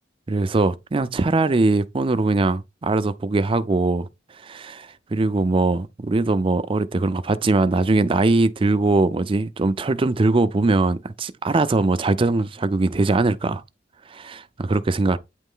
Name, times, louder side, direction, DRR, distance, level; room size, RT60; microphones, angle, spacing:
voice 1, 0.3-4.1 4.4-13.6 14.1-15.2, right 2 dB, 30° right, 0.4 m, -21 dB
9.1 x 3.1 x 3.7 m
head